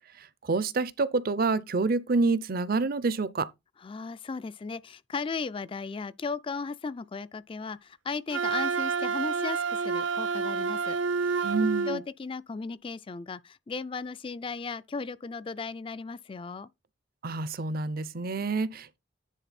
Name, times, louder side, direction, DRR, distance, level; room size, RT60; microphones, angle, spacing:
voice 1, 0.2-3.5 11.4-12.0 17.2-19.0, right 3 dB, 50° right, 0.6 m, -28 dB
voice 2, 3.8-11.5 11.8-16.7, left 4 dB, 30° left, 0.4 m, -36 dB
Wind instrument woodwind instrument, 8.3-12.0, right 5 dB, 80° right, 0.8 m, -29 dB
10.0 x 4.0 x 4.2 m
head